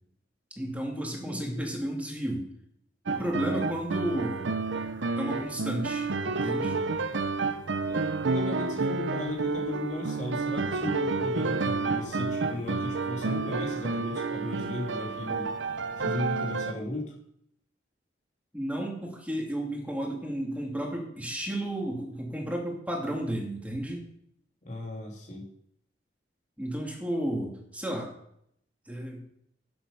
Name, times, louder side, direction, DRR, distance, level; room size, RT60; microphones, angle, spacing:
voice 1, 0.6-2.5 3.1-4.5 5.2-6.8 18.5-24.0 26.6-28.1 28.9-29.2, right 1 dB, 10° right, 0 dB, 2.7 m, -32 dB
voice 2, 1.2-1.6 7.9-15.5 16.0-17.1 24.6-25.5, left 2 dB, 40° left, -2 dB, 3.2 m, -36 dB
sound 1, 3.1-16.7, right 4 dB, 85° right, 0.7 m, -30 dB
12.0 x 8.0 x 5.6 m, 0.71 s
head